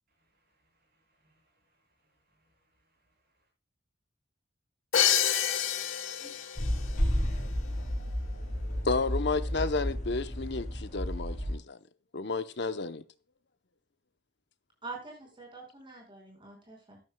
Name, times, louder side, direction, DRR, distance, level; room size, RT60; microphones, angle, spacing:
voice 1, 0.2-2.5 2.8-2.9, right 1 dB, 45° right, 6.9 m, -74 dB
Crash cymbal, 4.9-6.8, left 9 dB, 85° left, 1.3 m, -27 dB
sound 1, 6.6-11.5, equal, 40° left, 7.5 m, -32 dB
voice 2, 8.7-11.8 12.1-13.0, left 3 dB, 55° left, 0.8 m, -32 dB
voice 3, 14.8-17.0, right 3 dB, 25° right, 5.2 m, -45 dB
13.5 x 12.5 x 2.3 m
head